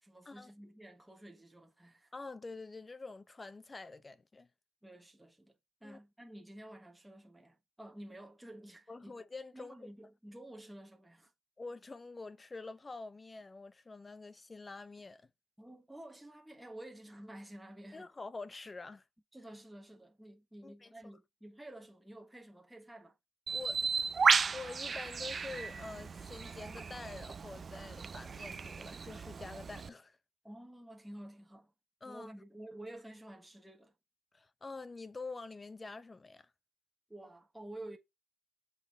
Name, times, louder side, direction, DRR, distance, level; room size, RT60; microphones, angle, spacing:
voice 1, 0.0-2.1 4.8-5.5 5.8-9.2 9.5-11.3 15.6-18.1 19.3-23.2 30.4-31.7 32.0-33.9 37.1-38.0, right 1 dB, 5° right, 1.4 m, -51 dB
voice 2, 2.1-4.5 5.8-6.0 8.9-9.7 11.6-15.2 17.9-19.0 20.6-20.9 23.5-30.2 32.0-32.3 34.3-36.5, left 3 dB, 25° left, 0.7 m, -47 dB
Bird, 23.5-29.9, right 5 dB, 40° right, 0.5 m, -34 dB
6.8 x 4.0 x 3.6 m
cardioid pair, 90°, 0 cm